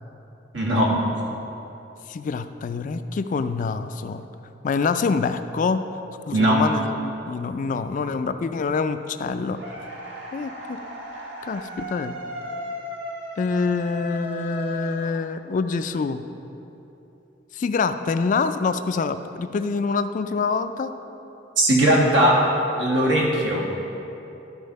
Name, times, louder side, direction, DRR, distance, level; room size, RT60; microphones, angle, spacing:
voice 1, 0.5-1.0 6.3-6.6 21.6-22.5 22.8-23.8, right 1 dB, 85° right, -3 dB, 1.7 m, -19 dB
voice 2, 2.1-4.3 4.6-5.9 6.3-9.6 10.3-10.8 11.4-12.1 13.4-16.3 17.5-20.9, left 4 dB, 45° left, 10 dB, 0.3 m, -26 dB
sound 1, 9.5-15.6, equal, 70° right, 1.7 m, -36 dB
12.0 x 4.3 x 5.3 m, 2.9 s
head